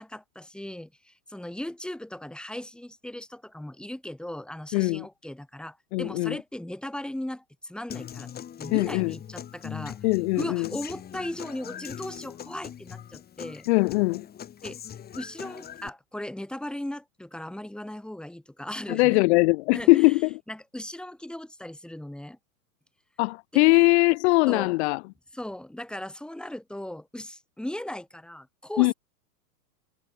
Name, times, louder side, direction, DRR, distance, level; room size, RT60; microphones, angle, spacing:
voice 1, 0.0-8.3 8.6-10.0 10.4-13.7 14.6-14.8 15.2-19.2 19.7-20.1 20.5-22.4 24.5-24.7 25.3-28.9, left 1 dB, ahead, 6.0 m, -37 dB
voice 2, 4.7-5.0 5.9-6.4 8.7-9.1 10.0-10.7 13.7-14.2 18.9-20.3 23.2-25.0 28.8-28.9, left 25 dB, 45° left, 1.2 m, -21 dB
Human voice / Acoustic guitar, 7.9-15.9, left 9 dB, 20° left, 3.4 m, -41 dB
hypercardioid pair, 140°, 47 cm